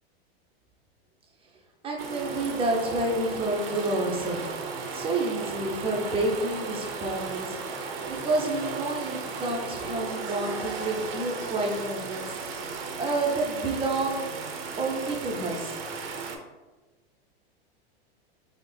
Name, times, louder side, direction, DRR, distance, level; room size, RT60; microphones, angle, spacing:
voice 1, 1.8-4.4 4.9-7.6 8.1-12.7 13.0-14.2 14.8-15.8, right 2 dB, 20° right, 0 dB, 0.5 m, -29 dB
sound 1, 2.0-16.4, right 4 dB, 75° right, 0.6 m, -35 dB
3.4 x 2.0 x 3.2 m, 1.2 s
hypercardioid pair, 115°, 30 cm